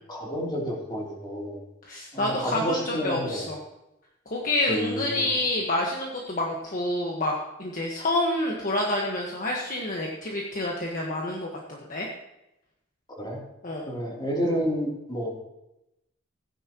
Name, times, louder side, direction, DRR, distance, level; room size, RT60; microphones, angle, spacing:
voice 1, 0.1-1.6 2.1-3.5 4.7-5.3 13.2-13.4 13.8-15.4, equal, 25° left, -3 dB, 3.1 m, -30 dB
voice 2, 1.8-3.6 4.2-12.1 13.6-13.9, left 1 dB, 45° left, -2 dB, 1.5 m, -28 dB
15.5 x 10.0 x 3.0 m, 0.88 s
head